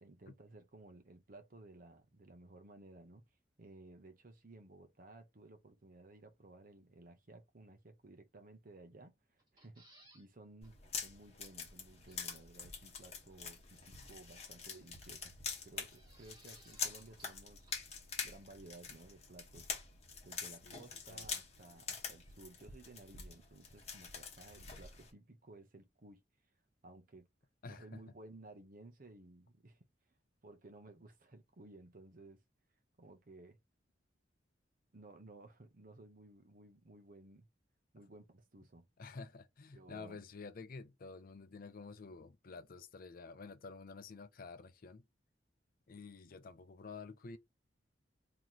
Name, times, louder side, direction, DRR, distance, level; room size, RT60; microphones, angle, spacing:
voice 1, 0.0-3.3 3.6-15.3 15.6-17.8 18.2-19.7 20.2-26.2 26.8-27.3 27.6-29.8 30.4-32.4 33.0-33.6 34.9-37.5 37.9-38.9 39.7-40.2, right 2 dB, 50° right, 0.8 m, -57 dB
sound 1, 9.4-10.3 10.6-10.7 11.0-11.1 12.1-12.5 13.7-14.3 15.8-17.4 17.7-17.8, right 2 dB, 25° right, 1.7 m, -65 dB
sound 2, 10.6-25.1, left 5 dB, 35° left, 1.2 m, -46 dB
voice 2, 27.6-28.0 39.0-45.0 45.9-47.4, left 4 dB, 55° left, 0.5 m, -50 dB
3.0 x 2.9 x 3.9 m
head